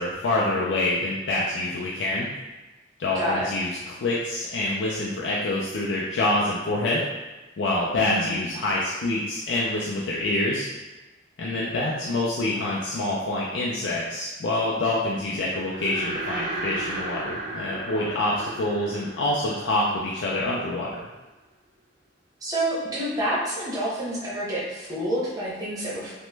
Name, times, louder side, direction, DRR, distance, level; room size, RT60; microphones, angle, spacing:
voice 1, 0.0-2.3 3.0-7.0 7.6-10.7 11.4-20.9, left 2 dB, 85° left, -5 dB, 0.4 m, -26 dB
voice 2, 3.1-3.5 7.9-8.5 22.4-26.1, right 1 dB, 20° right, -8 dB, 0.9 m, -28 dB
sound 1, 15.5-20.9, right 2 dB, 45° right, 0.5 m, -35 dB
2.9 x 2.1 x 3.2 m, 1.1 s
head